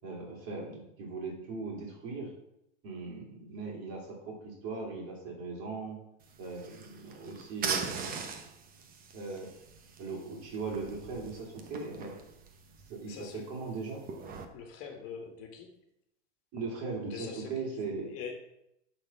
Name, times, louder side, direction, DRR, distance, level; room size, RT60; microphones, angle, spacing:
voice 1, 0.0-2.3 2.8-6.0 6.4-8.2 9.1-9.5 10.0-12.2 12.9-14.0 16.5-18.1, right 4 dB, 40° right, -1 dB, 3.4 m, -39 dB
sound 1, 6.2-14.5, right 5 dB, 25° right, 1.0 m, -41 dB
voice 2, 13.1-13.5 14.5-15.8 17.1-17.7 18.0-18.4, left 6 dB, 40° left, 4 dB, 1.7 m, -43 dB
10.5 x 4.3 x 5.7 m, 0.82 s
supercardioid pair, 135°, 34 cm